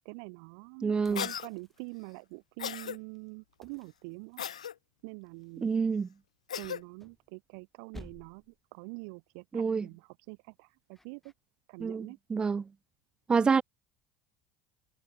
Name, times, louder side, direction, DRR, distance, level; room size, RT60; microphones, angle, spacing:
voice 1, 0.0-4.4 5.0-5.7 6.6-8.4 8.7-11.2 11.7-12.2, right 35 dB, 70° right, 0.8 m, -45 dB
voice 2, 0.8-1.3 5.6-6.1 9.5-9.9 11.8-12.7 13.3-13.6, right 5 dB, 25° right, 0.5 m, -27 dB
sound 1, 1.0-2.3 3.6-4.8 6.6-7.6 7.9-8.6 11.0-11.3, left 1 dB, 10° left, 2.5 m, -54 dB
Cough, 1.2-1.5 2.6-3.0 4.4-4.7 6.5-6.8, left 9 dB, 85° left, 0.9 m, -36 dB
hypercardioid pair, 65°, 3 cm